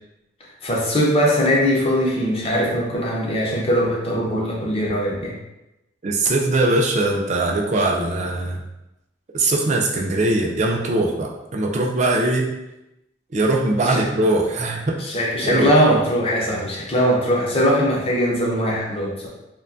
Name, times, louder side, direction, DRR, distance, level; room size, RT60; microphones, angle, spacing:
voice 1, 0.6-5.3 13.9-14.0 15.0-19.3, equal, 30° left, -3 dB, 0.5 m, -20 dB
voice 2, 6.0-8.6 9.3-12.6 13.3-15.0 15.4-15.7, right 2 dB, 35° right, 0 dB, 0.3 m, -21 dB
2.7 x 2.2 x 2.5 m, 0.93 s
head